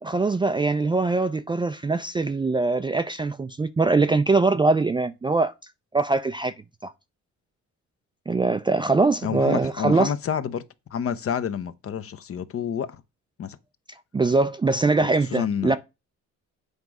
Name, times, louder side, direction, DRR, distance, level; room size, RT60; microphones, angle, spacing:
voice 1, 0.0-5.5 5.9-6.5 6.8-6.9 8.3-10.1 14.1-15.8, right 3 dB, 15° right, 0.3 m, -22 dB
voice 2, 9.2-10.6 10.9-13.0 13.4-13.6 15.0-15.8, left 8 dB, 50° left, 0.7 m, -29 dB
8.2 x 3.9 x 4.8 m
cardioid pair, 90°, 30 cm